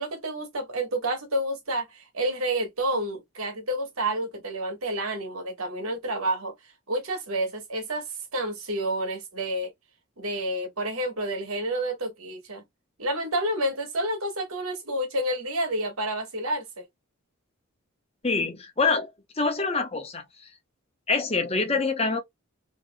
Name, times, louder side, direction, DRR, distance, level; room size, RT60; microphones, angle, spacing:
voice 1, 0.0-6.5 6.9-8.1 8.3-9.7 10.2-12.6 13.0-16.8, right 1 dB, 85° right, 1.5 m, -29 dB
voice 2, 18.2-19.1 19.4-20.2 21.1-22.2, left 4 dB, 30° left, 0.8 m, -25 dB
3.3 x 3.0 x 2.2 m
head